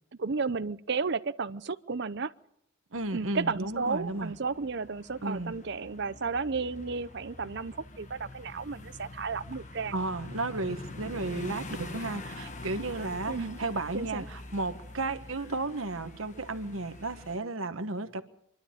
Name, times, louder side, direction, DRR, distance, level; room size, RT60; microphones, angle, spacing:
voice 1, 0.2-2.3 3.1-9.9 13.3-13.6 13.9-14.2, right 4 dB, 55° right, 0.7 m, -33 dB
sound 1, 2.9-17.4, left 2 dB, 35° left, 1.4 m, -45 dB
voice 2, 2.9-4.3 5.2-5.5 9.9-18.2, right 2 dB, 80° right, 1.3 m, -33 dB
24.5 x 12.0 x 8.8 m
head